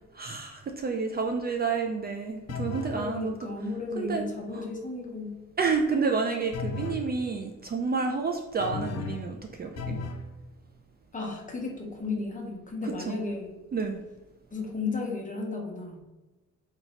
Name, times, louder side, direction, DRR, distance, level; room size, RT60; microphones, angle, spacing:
voice 1, 0.2-3.5 4.0-4.3 4.5-4.6 5.6-10.0 12.8-13.2 13.7-14.0, right 4 dB, 35° right, 3 dB, 0.4 m, -30 dB
sound 1, 2.5-3.0 6.5-7.1 8.6-9.3 9.8-10.3, left 4 dB, 60° left, 0.6 m, -34 dB
voice 2, 2.9-5.3 11.1-13.5 14.5-16.0, left 3 dB, 25° left, 0 dB, 1.0 m, -34 dB
2.8 x 2.8 x 4.2 m, 1.1 s
cardioid pair, 90°, 30 cm